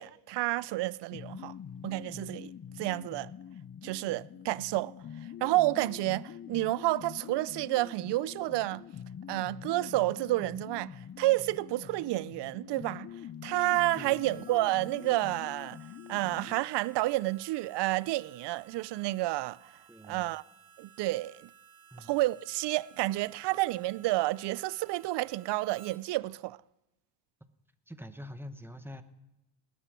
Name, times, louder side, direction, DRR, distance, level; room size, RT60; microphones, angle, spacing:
voice 1, 0.0-1.5 1.8-3.3 3.8-4.9 5.4-8.9 9.3-13.1 13.4-15.8 16.1-19.8 20.1-20.4 20.8-21.5 22.0-26.6, right 18 dB, 70° right, 0.5 m, -30 dB
sound 1, 1.1-16.6, left 9 dB, 30° left, 0.5 m, -45 dB
Harmonica, 13.6-26.0, right 7 dB, 55° right, 1.6 m, -57 dB
voice 2, 19.9-20.3 21.9-22.2 27.9-29.0, left 1 dB, 5° right, 0.9 m, -45 dB
18.5 x 10.0 x 6.1 m
cardioid pair, 115°, 43 cm